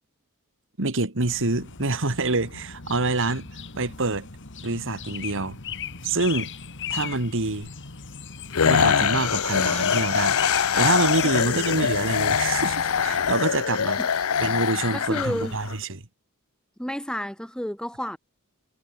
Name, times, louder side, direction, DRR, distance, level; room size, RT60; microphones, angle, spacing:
voice 1, 0.8-3.4 3.8-4.3 4.6-5.6 6.0-6.5 6.9-7.7 8.7-14.0 14.4-16.0, right 3 dB, 60° right, 2.3 m, -26 dB
sound 1, 1.2-13.3, left 6 dB, 55° left, 2.1 m, -38 dB
sound 2, 8.5-15.7, left 7 dB, 75° left, 0.7 m, -23 dB
voice 2, 11.2-11.8 14.0-14.1 14.9-15.6 16.8-18.2, equal, 5° left, 2.3 m, -31 dB
head